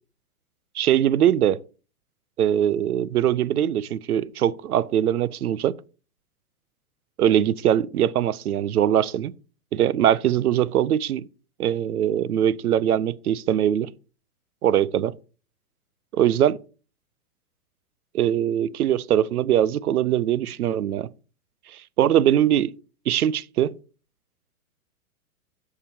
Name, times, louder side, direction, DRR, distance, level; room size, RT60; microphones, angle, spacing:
voice 1, 0.7-1.6 2.4-5.8 7.2-9.3 9.7-11.2 11.6-13.9 14.6-15.2 16.1-16.6 18.1-21.1 21.7-22.7 23.1-23.7, right 10 dB, 85° right, 0.5 m, -22 dB
13.0 x 4.9 x 2.7 m
hypercardioid pair, 115°, 44 cm